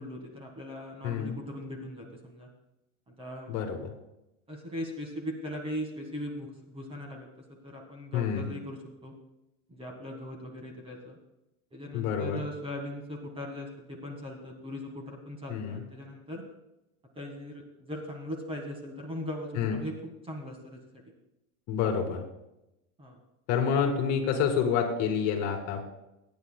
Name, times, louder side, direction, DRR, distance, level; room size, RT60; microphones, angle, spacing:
voice 1, 0.0-2.5 3.1-3.5 4.5-9.1 9.7-11.2 11.7-16.4 17.1-21.0 23.0-23.2, left 1 dB, 15° right, 2 dB, 1.6 m, -39 dB
voice 2, 1.0-1.4 3.5-3.9 8.1-8.5 11.9-12.4 15.5-15.8 19.6-19.8 21.7-22.2 23.5-25.8, left 7 dB, 45° left, 3 dB, 2.4 m, -28 dB
23.5 x 9.6 x 2.3 m, 0.90 s
supercardioid pair, 150°, 40 cm